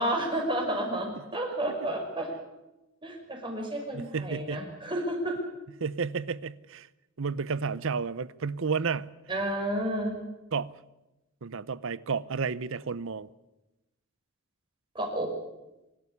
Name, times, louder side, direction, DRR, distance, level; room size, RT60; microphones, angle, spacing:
voice 1, 0.0-2.3 3.0-5.4 9.3-10.1 14.9-15.3, right 1 dB, 25° right, 5.5 m, -31 dB
voice 2, 3.9-4.7 5.8-6.9 7.2-9.1 10.5-10.8 11.4-13.3, right 5 dB, 65° right, 0.7 m, -31 dB
24.5 x 12.5 x 9.9 m
head